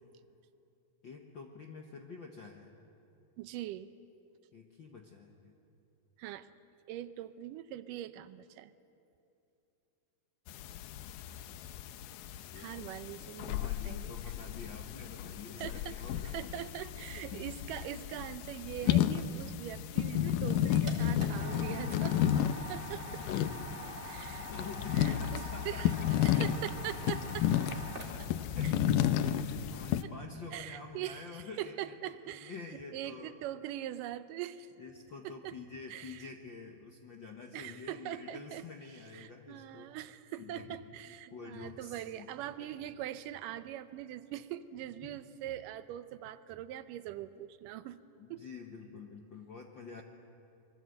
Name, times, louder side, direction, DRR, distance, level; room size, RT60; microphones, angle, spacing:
voice 1, 1.0-2.7 4.5-5.6 12.5-12.9 13.4-16.3 17.3-17.5 24.5-26.3 27.6-28.2 28.5-28.7 29.2-33.3 34.8-40.0 40.4-40.8 41.1-42.3 42.6-42.7 45.0-45.1 48.2-50.0, left 5 dB, 60° left, 2 dB, 1.2 m, -48 dB
voice 2, 3.4-3.9 6.2-6.5 6.9-8.7 12.5-14.1 15.6-16.0 16.3-22.3 22.7-23.2 24.1-24.5 25.0-25.9 26.2-27.5 28.6-28.7 30.0-30.1 30.5-34.7 35.2-35.6 35.9-36.3 37.5-38.6 39.1-48.0 48.3-48.4, right 12 dB, 80° right, 13 dB, 2.3 m, -42 dB
sound 1, 10.5-30.0, left 10 dB, 80° left, 2.3 m, -33 dB
sound 2, 20.4-28.4, right 1 dB, 20° right, 2.3 m, -46 dB
24.5 x 22.5 x 8.0 m, 2.7 s
omnidirectional pair, 3.9 m